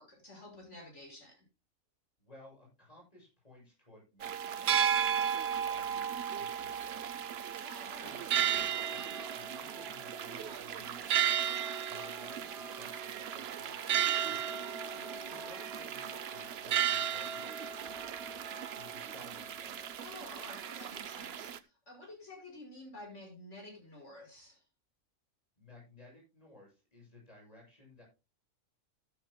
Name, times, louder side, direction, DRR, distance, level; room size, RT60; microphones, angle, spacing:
voice 1, 0.0-1.4 7.6-8.1 14.9-15.3 20.0-24.6, left 1 dB, 60° left, 1 dB, 6.3 m, -51 dB
voice 2, 2.2-7.5 8.0-11.3 11.8-14.5 15.2-18.2 18.7-20.1 25.6-28.0, left 2 dB, 30° left, -2 dB, 7.7 m, -57 dB
sound 1, 4.2-21.6, right 9 dB, 60° right, 0.8 m, -34 dB
sound 2, 8.0-18.7, equal, ahead, 2.9 m, -56 dB
14.5 x 12.5 x 2.2 m, 0.27 s
omnidirectional pair, 1.4 m